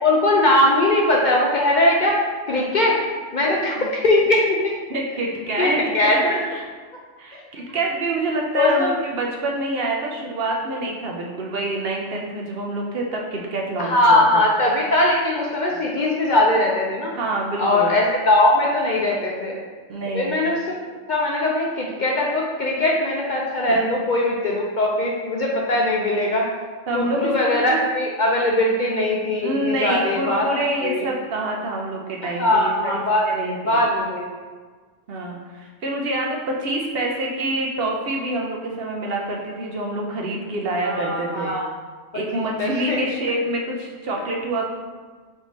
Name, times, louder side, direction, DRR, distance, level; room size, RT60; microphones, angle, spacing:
voice 1, 0.0-2.2 2.5-3.0 3.3-4.8 5.6-6.4 8.5-8.9 13.8-17.1 17.6-19.6 20.1-20.7 21.1-26.5 26.9-31.1 32.4-34.4 40.8-41.6 42.1-43.0, left 1 dB, 55° left, -2 dB, 0.5 m, -20 dB
voice 2, 4.9-5.8 6.2-6.7 7.2-14.4 17.1-18.0 19.9-20.3 23.7-23.8 26.9-27.8 29.4-32.7 33.2-33.8 35.1-41.6 42.1-44.7, right 2 dB, 60° right, -1 dB, 0.8 m, -26 dB
3.7 x 3.6 x 4.0 m, 1.4 s
omnidirectional pair, 1.3 m